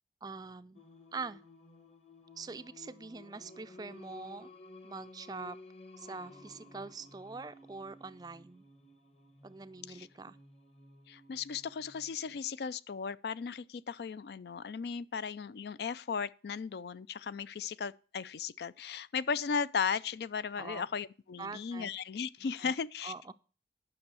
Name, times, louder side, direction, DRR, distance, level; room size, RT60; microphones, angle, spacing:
voice 1, 0.2-0.8 1.1-1.4 2.4-4.5 4.8-5.6 6.0-8.7 9.4-10.4 20.6-20.9 21.4-21.9 22.6-22.7 23.0-23.3, right 4 dB, 20° right, 0.4 m, -44 dB
Singing, 0.7-12.5, left 2 dB, 35° left, 1.1 m, -55 dB
voice 2, 11.1-23.3, left 6 dB, 65° left, 0.4 m, -36 dB
9.8 x 6.2 x 6.2 m
head